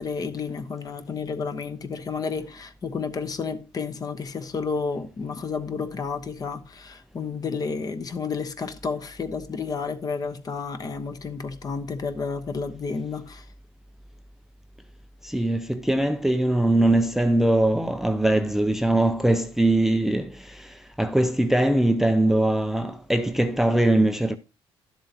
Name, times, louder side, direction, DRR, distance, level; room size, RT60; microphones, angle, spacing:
voice 1, 0.0-13.5, left 5 dB, 35° left, 1.1 m, -31 dB
voice 2, 15.2-24.4, right 1 dB, 5° right, 0.5 m, -22 dB
11.5 x 7.4 x 2.9 m
cardioid pair, 120°, 11 cm